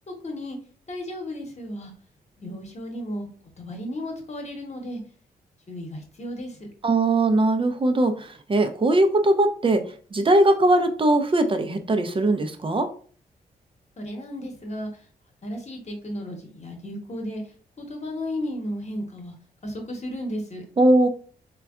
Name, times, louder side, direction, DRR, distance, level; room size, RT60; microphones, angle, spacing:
voice 1, 0.1-0.6 0.9-1.9 2.4-3.3 3.6-5.0 5.7-6.7 14.0-14.9 15.4-17.4 17.8-19.3 19.6-20.6, left 1 dB, 40° left, 2 dB, 1.0 m, -34 dB
voice 2, 6.8-12.9 20.8-21.1, right 2 dB, 30° right, 8 dB, 0.5 m, -20 dB
3.3 x 2.2 x 2.4 m, 0.43 s
supercardioid pair, 50°, 17 cm